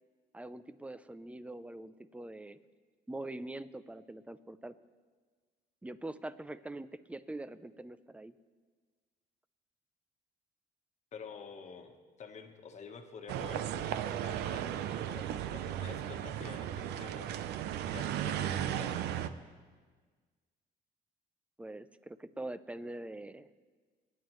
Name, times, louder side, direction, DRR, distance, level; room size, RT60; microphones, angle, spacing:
voice 1, 0.3-2.6 3.1-4.7 5.8-8.3 21.6-23.5, right 2 dB, 5° right, 14 dB, 0.5 m, -43 dB
voice 2, 11.1-17.3 17.9-18.9, left 6 dB, 45° left, 5 dB, 1.3 m, -49 dB
sound 1, 13.3-19.3, right 10 dB, 80° right, 0.6 m, -35 dB
27.5 x 9.3 x 3.1 m, 1.5 s
cardioid pair, 110°, 17 cm